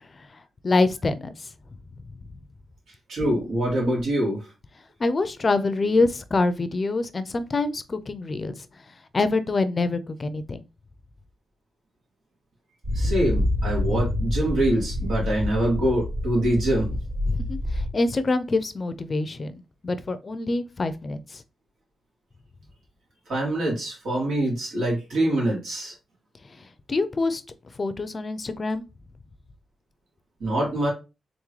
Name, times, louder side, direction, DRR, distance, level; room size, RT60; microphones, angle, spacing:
voice 1, 0.6-1.3 5.0-8.5 9.1-10.6 17.3-21.4 26.9-27.4 27.8-28.8, left 3 dB, 35° left, 0.5 m, -25 dB
voice 2, 3.1-4.4 12.9-16.9 23.3-25.9 30.4-30.9, right 1 dB, 85° right, 2.5 m, -24 dB
sound 1, 12.8-17.9, left 1 dB, 65° right, 1.9 m, -27 dB
3.7 x 3.7 x 3.1 m
cardioid pair, 100°, 0 cm